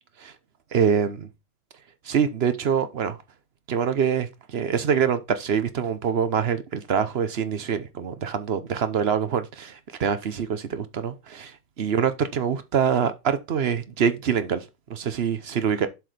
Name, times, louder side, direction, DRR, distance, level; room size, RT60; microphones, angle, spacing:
voice 1, 0.7-1.3 2.0-3.2 3.7-14.6 14.9-15.9, right 7 dB, 50° right, 0.8 m, -25 dB
7.5 x 4.8 x 5.1 m
omnidirectional pair, 1.9 m